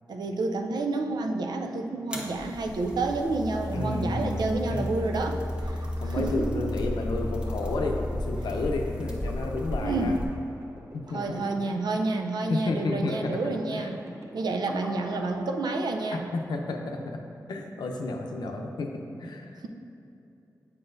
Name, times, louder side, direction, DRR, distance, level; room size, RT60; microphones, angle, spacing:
voice 1, 0.1-6.7 9.8-10.2 11.1-14.0 14.3-16.3, right 3 dB, 75° right, 3 dB, 0.5 m, -29 dB
sound 1, 2.1-10.2, left 1 dB, 15° right, 1.0 m, -33 dB
voice 2, 3.7-4.9 6.0-10.2 10.9-11.4 12.5-13.4 13.7-14.0 16.3-17.2 17.5-19.5, left 2 dB, 90° left, 2 dB, 0.6 m, -31 dB
sound 2, 5.5-16.2, right 1 dB, 40° right, 0.7 m, -48 dB
7.7 x 5.7 x 2.6 m, 2.8 s
cardioid pair, 50°, 7 cm